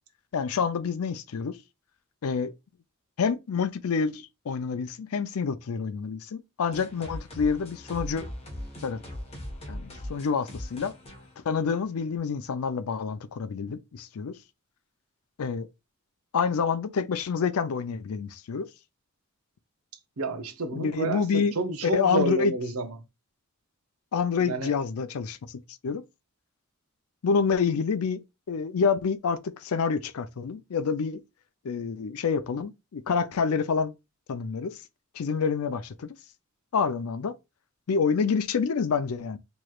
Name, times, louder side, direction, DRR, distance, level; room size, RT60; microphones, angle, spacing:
voice 1, 0.3-1.6 2.2-2.5 3.2-8.3 8.8-9.0 9.7-10.9 11.5-14.3 15.4-15.7 16.3-18.7 20.7-21.5 21.9-22.5 24.1-26.0 27.2-28.2 28.5-31.2 31.6-33.9 34.3-34.7 35.2-36.1 36.7-37.3 37.9-39.4, left 5 dB, 80° left, 0.4 m, -27 dB
sound 1, 6.7-12.2, left 1 dB, 25° left, 1.1 m, -40 dB
voice 2, 20.2-23.0 24.4-24.7, right 2 dB, 75° right, 0.7 m, -29 dB
4.6 x 3.1 x 2.3 m
head